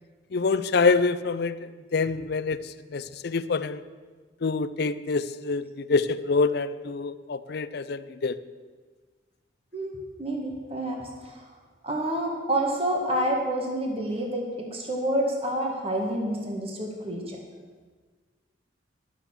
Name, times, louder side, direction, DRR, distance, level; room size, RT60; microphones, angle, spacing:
voice 1, 0.3-1.6 1.9-3.8 4.4-8.4, left 4 dB, 60° left, 14 dB, 0.5 m, -26 dB
voice 2, 9.7-11.5 11.8-17.4, right 1 dB, 30° right, 0 dB, 1.7 m, -28 dB
12.0 x 7.2 x 7.3 m, 1.5 s
head